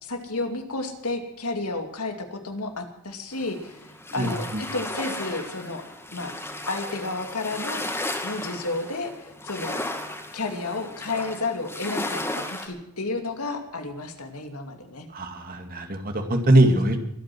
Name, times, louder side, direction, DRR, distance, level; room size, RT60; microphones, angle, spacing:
voice 1, 0.0-3.8 4.1-4.4 4.7-5.8 6.1-6.3 6.7-7.9 8.2-9.8 10.3-15.1 16.6-17.0, left 3 dB, 80° left, 5 dB, 2.6 m, -31 dB
sound 1, 3.3-12.7, left 1 dB, 10° left, 2.3 m, -34 dB
voice 2, 4.2-4.6 15.1-17.0, right 1 dB, 40° right, 5 dB, 2.3 m, -22 dB
23.5 x 9.1 x 6.2 m, 0.84 s
head